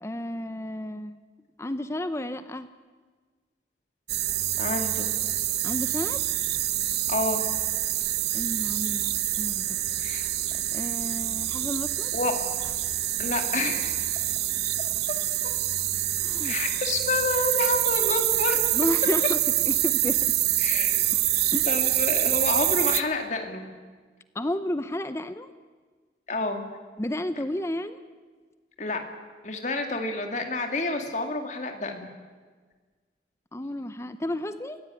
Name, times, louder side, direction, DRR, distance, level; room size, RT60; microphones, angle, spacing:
voice 1, 0.0-1.2 1.6-2.7 5.6-6.2 8.3-9.6 10.7-12.1 16.2-16.5 18.7-20.3 21.5-21.7 24.3-25.5 27.0-28.0 33.5-34.8, left 1 dB, 15° left, 11 dB, 0.6 m, -32 dB
sound 1, 4.1-23.0, right 14 dB, 65° right, 0.9 m, -26 dB
voice 2, 4.6-5.1 7.1-7.4 10.0-10.3 12.1-12.3 13.2-14.0 16.4-18.6 20.6-21.0 21.7-23.6 26.3-26.6 28.8-29.0 29.4-32.1, left 2 dB, 40° left, 4 dB, 2.3 m, -29 dB
27.5 x 16.0 x 9.2 m, 1.5 s
head